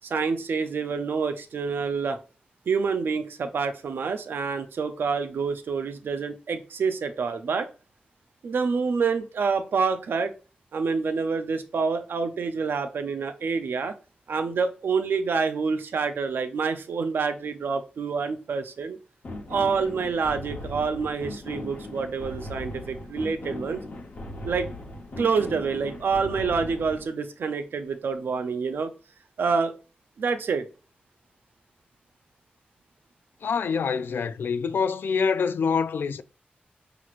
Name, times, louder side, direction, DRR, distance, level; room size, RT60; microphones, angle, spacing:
voice 1, 0.0-2.2 2.7-7.7 8.4-10.3 10.7-13.9 14.3-19.0 19.5-23.8 24.4-24.7 25.2-28.9 29.4-29.7 30.2-30.7, right 5 dB, 85° right, 0.5 m, -27 dB
sound 1, 19.2-27.1, left 1 dB, 55° left, 0.9 m, -38 dB
voice 2, 33.4-36.2, left 5 dB, 80° left, 0.3 m, -25 dB
5.9 x 2.9 x 2.5 m
wide cardioid pair, 120°, 4 cm